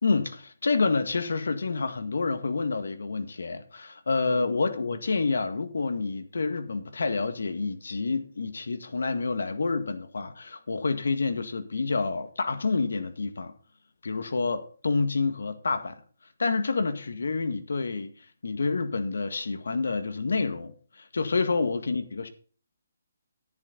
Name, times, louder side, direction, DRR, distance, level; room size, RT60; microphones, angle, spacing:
voice 1, 0.0-13.5 14.0-16.0 16.4-18.1 18.4-22.3, left 4 dB, 80° left, 1.8 m, -28 dB
11.0 x 10.5 x 3.9 m
hypercardioid pair, 180°, 0 cm